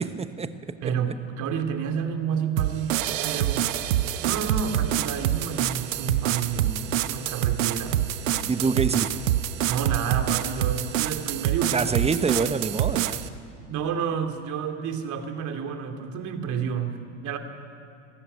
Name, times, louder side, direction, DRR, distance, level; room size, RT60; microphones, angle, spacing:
voice 1, 0.0-0.9 8.5-9.2 11.7-13.2, right 4 dB, 15° right, 11 dB, 1.2 m, -26 dB
voice 2, 0.8-3.6 4.2-8.5 9.7-11.9 12.4-12.5 13.6-17.4, right 7 dB, 50° right, 5 dB, 2.9 m, -30 dB
sound 1, 2.6-13.3, right 12 dB, 80° right, 1.0 m, -26 dB
20.0 x 14.5 x 9.8 m, 2.6 s
hypercardioid pair, 85°, 39 cm